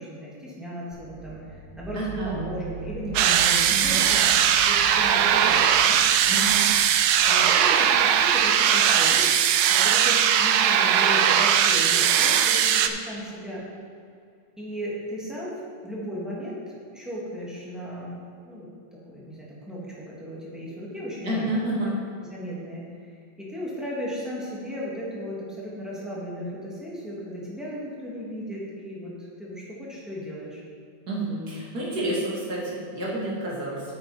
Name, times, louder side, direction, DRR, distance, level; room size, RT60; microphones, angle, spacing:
voice 1, 0.0-4.2 4.5-6.0 7.3-9.3 9.7-13.7 14.6-15.5 15.8-18.1 18.4-18.7 19.0-21.6 21.8-21.9 22.3-22.8 23.4-30.6, equal, ahead, -7 dB, 2.2 m, -35 dB
sound 1, 0.9-10.7, right 5 dB, 20° right, 1.4 m, -42 dB
voice 2, 1.9-2.3 3.7-4.0 6.3-6.7 21.2-21.9 31.1-33.8, right 1 dB, 50° right, -5 dB, 2.6 m, -29 dB
sound 2, 3.1-12.9, right 9 dB, 80° right, 0.9 m, -20 dB
9.3 x 7.8 x 4.3 m, 2.3 s
omnidirectional pair, 2.2 m